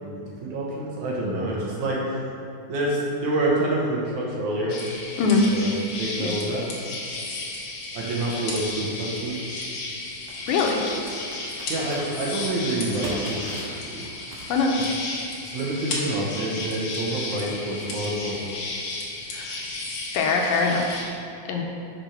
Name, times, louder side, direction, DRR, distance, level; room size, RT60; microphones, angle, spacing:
voice 1, 0.0-2.2 2.7-4.8 5.5-5.7 6.0-6.6 7.9-9.4 11.7-13.4 13.9-14.0 14.8-14.9 15.4-18.4, right 1 dB, 65° right, -3 dB, 2.3 m, -27 dB
sound 1, 4.7-21.1, left 2 dB, 65° left, 2.4 m, -33 dB
Computer keyboard, 7.5-7.6 9.1-9.4 10.3-12.1 12.7-15.4, right 2 dB, 80° right, 2.9 m, -40 dB
voice 2, 10.5-10.8 14.5-14.7 19.3-19.5 20.1-20.8 21.5-21.6, left 4 dB, 90° left, 1 dB, 2.7 m, -22 dB
6.5 x 6.0 x 5.8 m, 2.7 s
omnidirectional pair, 4.0 m